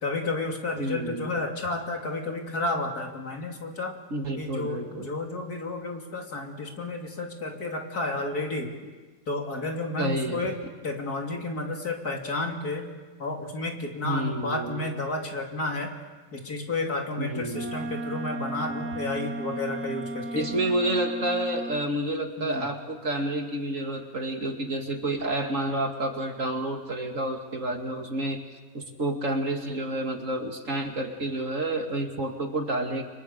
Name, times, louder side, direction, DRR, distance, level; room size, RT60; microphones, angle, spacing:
voice 1, 0.0-4.0 4.4-8.7 9.3-10.6 10.8-12.9 13.2-15.9 16.3-20.5 22.4-22.7, left 2 dB, 60° left, 1 dB, 3.4 m, -31 dB
voice 2, 0.8-1.3 4.1-5.2 8.8-8.9 10.0-10.5 14.0-14.8 17.2-17.8 20.3-28.4 28.7-33.0, right 1 dB, 50° right, 3 dB, 2.5 m, -29 dB
Wind instrument woodwind instrument, 17.5-21.9, right 2 dB, 70° right, 2.0 m, -35 dB
30.0 x 24.5 x 6.8 m, 1.3 s
omnidirectional pair, 1.8 m